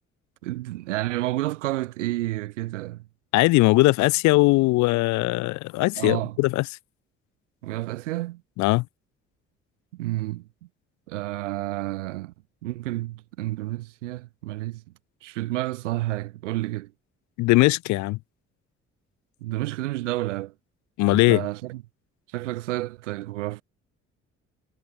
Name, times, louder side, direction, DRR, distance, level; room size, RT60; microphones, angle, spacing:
voice 1, 0.4-3.0 5.9-6.4 7.6-8.4 9.9-10.5 11.1-12.3 12.6-14.8 15.2-16.9 19.4-20.5 21.1-21.8 22.3-23.6, right 17 dB, 75° right, 1.0 m, -30 dB
voice 2, 3.3-6.7 8.6-8.9 17.4-18.2 21.0-21.4, left 21 dB, 50° left, 0.5 m, -20 dB
figure-of-eight pair, 45°, 37 cm